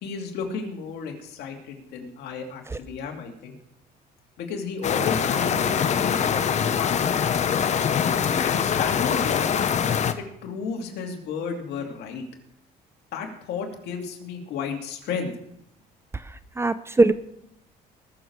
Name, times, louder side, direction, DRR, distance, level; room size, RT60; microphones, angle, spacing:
voice 1, 0.0-3.5 4.4-7.4 8.4-9.5 10.2-12.2 13.1-15.3, left 5 dB, 75° left, 2 dB, 2.6 m, -33 dB
sound 1, 4.8-10.1, left 7 dB, 45° left, 0.9 m, -23 dB
voice 2, 16.1-17.1, right 2 dB, 15° right, 14 dB, 0.6 m, -22 dB
20.0 x 7.2 x 4.7 m, 0.74 s
cardioid pair, 110°, 17 cm